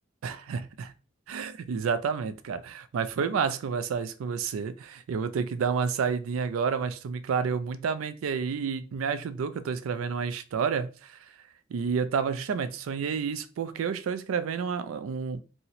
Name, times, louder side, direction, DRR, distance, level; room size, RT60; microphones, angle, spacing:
voice 1, 0.2-0.9 1.3-11.3 11.7-15.4, right 6 dB, 75° right, 0.4 m, -30 dB
2.8 x 2.0 x 3.9 m
head